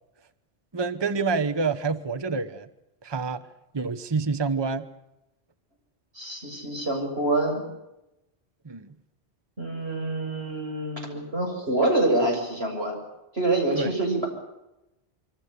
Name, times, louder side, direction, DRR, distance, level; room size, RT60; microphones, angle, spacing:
voice 1, 0.7-2.7 3.0-3.4 3.7-4.9 8.6-8.9 13.7-13.9, right 4 dB, 25° right, 11 dB, 1.0 m, -27 dB
voice 2, 6.1-7.6 9.6-13.0 13.3-14.3, right 2 dB, 65° right, 1 dB, 7.4 m, -26 dB
26.0 x 24.5 x 6.8 m, 0.93 s
omnidirectional pair, 1.1 m